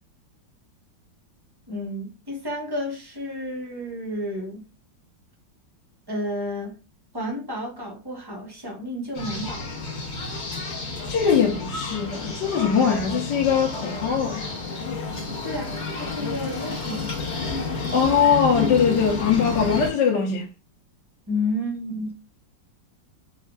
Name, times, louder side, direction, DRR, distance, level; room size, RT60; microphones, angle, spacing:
voice 1, 1.7-4.6 6.1-6.8 7.1-9.7 15.4-17.1 21.3-22.1, left 1 dB, 25° right, 0.5 m, -31 dB
sound 1, 9.1-19.9, left 3 dB, 45° left, 1.2 m, -30 dB
voice 2, 11.1-14.4 17.9-20.5, left 6 dB, 70° left, 1.4 m, -21 dB
4.3 x 2.4 x 2.3 m
omnidirectional pair, 2.0 m